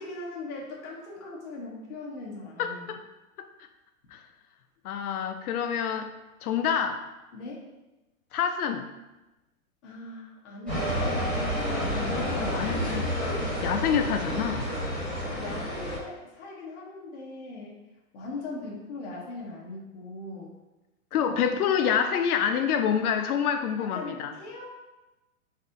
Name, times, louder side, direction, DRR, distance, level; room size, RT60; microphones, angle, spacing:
voice 1, 0.0-3.0 7.3-7.7 9.8-11.2 15.3-17.8 18.1-20.5 21.1-21.3 23.9-24.7, left 2 dB, 50° left, -4 dB, 1.0 m, -40 dB
voice 2, 2.6-3.0 3.4-3.5 4.1-4.2 4.8-6.1 6.4-7.0 8.3-8.9 11.7-13.3 13.6-14.7 21.1-24.3, left 8 dB, 85° left, 7 dB, 0.6 m, -27 dB
sound 1, 10.7-16.0, equal, ahead, 0.9 m, -29 dB
4.0 x 2.7 x 2.6 m, 1.0 s
hypercardioid pair, 165°, 43 cm